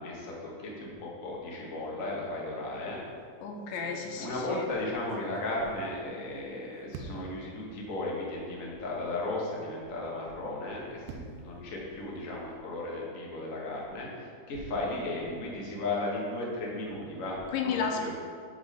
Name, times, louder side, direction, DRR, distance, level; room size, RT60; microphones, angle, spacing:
voice 1, 0.0-3.0 4.2-18.1, left 2 dB, 65° left, -4 dB, 0.7 m, -35 dB
sound 1, 2.9-3.2 3.7-6.5 6.9-7.5 8.2-8.3 8.6-8.7 10.4-12.7, right 4 dB, 80° right, 2.1 m, -48 dB
voice 2, 3.4-4.7 17.5-18.1, left 6 dB, 90° left, 2 dB, 2.5 m, -32 dB
6.0 x 5.1 x 5.7 m, 2.2 s
omnidirectional pair, 3.8 m